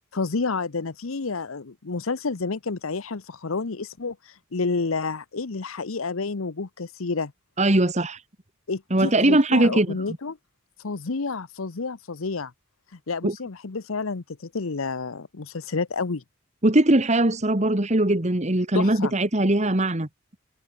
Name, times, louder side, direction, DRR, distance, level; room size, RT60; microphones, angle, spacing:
voice 1, 0.1-7.3 8.7-10.4 10.8-12.5 12.9-16.2 18.7-19.1, left 4 dB, 80° left, 0.9 m, -30 dB
voice 2, 7.6-8.2 8.9-9.9 13.2-13.3 16.6-20.1, right 1 dB, 35° right, 1.7 m, -20 dB
head